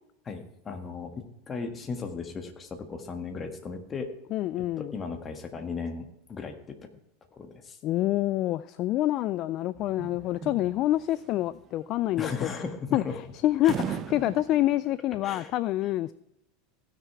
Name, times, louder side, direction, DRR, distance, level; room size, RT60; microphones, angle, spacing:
voice 1, 0.2-4.1 4.8-6.9 7.3-7.8 12.2-13.2 13.6-13.7 15.2-15.5, left 5 dB, 25° left, 1.6 m, -36 dB
voice 2, 4.3-4.9 7.8-12.5 12.9-13.0 13.4-16.1, left 14 dB, 50° left, 0.4 m, -27 dB
sound 1, 9.8-15.0, right 8 dB, 35° right, 0.8 m, -38 dB
16.0 x 6.7 x 4.7 m
supercardioid pair, 110°, 0 cm